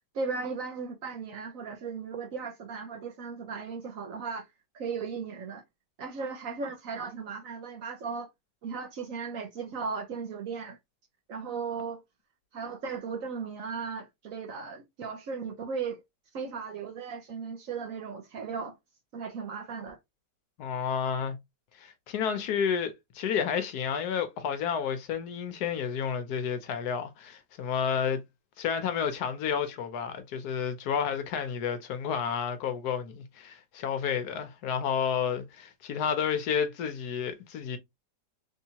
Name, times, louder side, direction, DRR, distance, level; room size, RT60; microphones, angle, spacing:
voice 1, 0.1-4.5 4.7-5.6 6.0-8.3 8.6-10.8 11.3-12.0 12.5-16.0 16.3-18.7 19.1-20.0, right 5 dB, 60° right, 0.9 m, -36 dB
voice 2, 20.6-21.4 21.8-28.2 28.6-37.8, left 7 dB, 70° left, 1.1 m, -31 dB
3.5 x 2.7 x 2.8 m
omnidirectional pair, 1.9 m